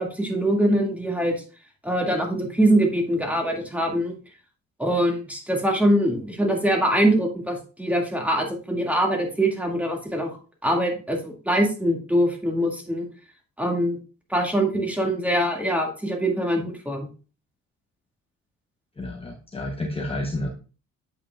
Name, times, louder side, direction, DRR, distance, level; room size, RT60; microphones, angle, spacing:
voice 1, 0.0-1.3 1.8-4.2 4.8-10.4 10.6-13.1 13.6-14.0 14.3-17.1, right 1 dB, 5° right, 1 dB, 1.9 m, -23 dB
voice 2, 19.0-20.5, left 1 dB, 20° left, 2 dB, 0.9 m, -30 dB
8.3 x 5.6 x 2.3 m, 0.36 s
cardioid pair, 90°, 30 cm